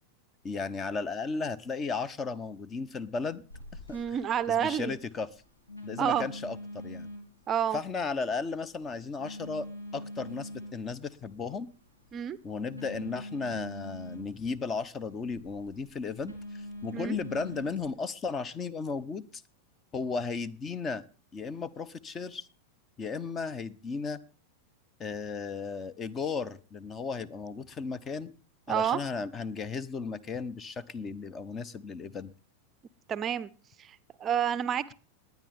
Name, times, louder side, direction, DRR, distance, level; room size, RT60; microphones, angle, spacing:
voice 1, 0.4-3.4 3.9-4.0 4.5-5.3 5.8-7.1 7.7-9.7 9.9-11.7 12.4-19.4 19.9-21.0 21.3-22.5 23.0-24.2 25.0-28.3 28.7-32.3, left 4 dB, 25° left, 0.9 m, -35 dB
Telephone, 3.5-17.9, left 1 dB, 85° left, 2.9 m, -45 dB
voice 2, 3.9-5.0 6.0-6.3 7.5-7.8 12.1-12.4 16.9-17.2 28.7-29.0 33.1-33.5 33.8-34.9, right 9 dB, 25° right, 0.6 m, -29 dB
21.0 x 9.4 x 3.5 m
figure-of-eight pair, 90°, 0 cm